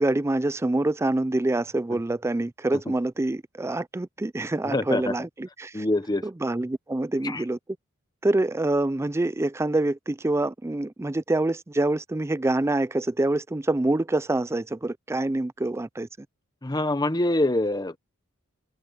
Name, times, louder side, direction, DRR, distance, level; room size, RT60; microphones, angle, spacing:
voice 1, 0.0-5.9 6.2-7.6 8.2-16.1, right 2 dB, 15° right, 0.4 m, -26 dB
voice 2, 4.7-5.1 5.7-6.3 7.2-7.4 16.6-18.0, left 1 dB, 20° left, 0.9 m, -25 dB
head